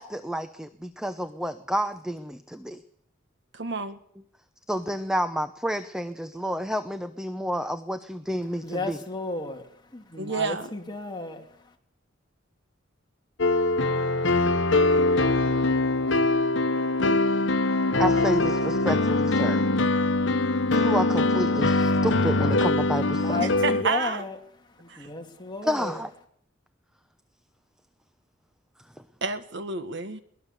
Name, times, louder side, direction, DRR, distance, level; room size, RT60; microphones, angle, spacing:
voice 1, 0.0-2.8 4.7-9.0 18.0-19.7 20.7-23.4 25.6-26.1, equal, 5° right, 0.8 m, -30 dB
voice 2, 3.5-4.0 10.2-10.7 23.4-24.2 24.9-25.1 29.2-30.2, right 4 dB, 65° right, 1.7 m, -30 dB
voice 3, 8.6-9.6 9.9-11.5 23.0-24.4 24.8-26.0, left 2 dB, 25° left, 2.7 m, -33 dB
sound 1, 13.4-23.8, left 2 dB, 70° left, 1.2 m, -23 dB
22.5 x 18.5 x 6.9 m
head